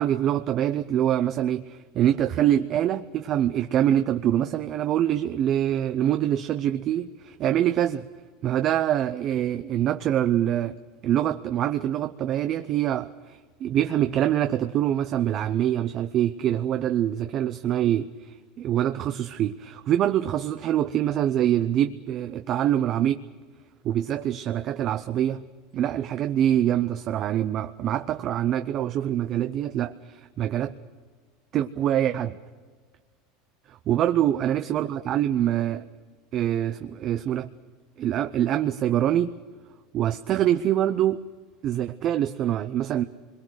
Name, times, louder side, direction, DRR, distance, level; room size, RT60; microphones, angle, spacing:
voice 1, 0.0-8.1 8.4-10.7 11.0-23.2 23.8-25.4 25.7-30.7 31.5-32.4 33.7-35.8 36.3-37.5 38.0-39.3 39.9-41.2 41.6-43.0, right 11 dB, 40° right, 9 dB, 0.6 m, -25 dB
27.0 x 22.0 x 6.4 m, 1.5 s
supercardioid pair, 145°, 0 cm